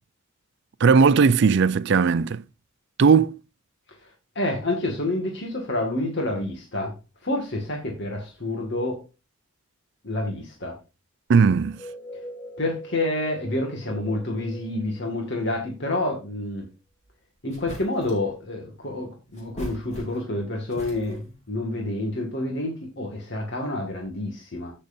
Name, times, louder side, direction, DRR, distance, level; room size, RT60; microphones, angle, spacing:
voice 1, 0.8-2.4 3.0-3.4 11.3-11.8, right 5 dB, 55° right, 0.4 m, -17 dB
voice 2, 4.4-6.9 7.2-9.0 10.0-10.7 12.6-16.7 17.4-24.7, left 1 dB, 55° left, 2.1 m, -28 dB
sound 1, 11.6-16.2, equal, 10° left, 2.7 m, -43 dB
sound 2, 17.0-17.1 17.5-18.3 19.3-20.4 20.7-21.4, equal, 35° left, 3.8 m, -40 dB
15.5 x 6.6 x 2.7 m
head